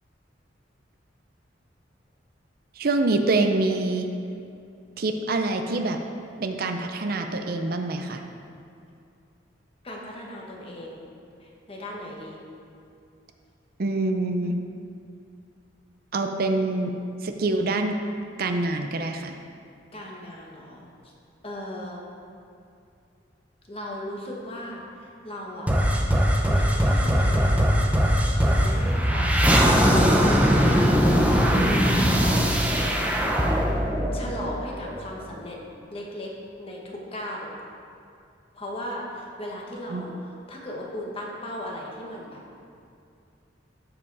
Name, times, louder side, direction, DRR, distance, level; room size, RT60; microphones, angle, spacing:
voice 1, 2.8-4.1 5.0-6.0 6.4-8.2 13.8-14.5 16.1-16.9 17.2-18.0 18.4-19.3 39.9-40.0, right 2 dB, 50° right, 6 dB, 0.6 m, -25 dB
voice 2, 9.8-11.0 11.4-12.4 19.9-20.9 21.4-22.0 23.7-24.8 25.2-25.7 26.4-27.9 28.4-29.6 30.3-30.8 31.5-31.9 32.2-32.4 34.1-35.6 35.9-36.3 36.6-36.8 37.1-37.5 38.5-42.4, left 1 dB, 30° left, -2 dB, 1.3 m, -37 dB
sound 1, 25.7-35.0, equal, 10° right, 0.7 m, -20 dB
12.5 x 4.9 x 4.8 m, 2.5 s
head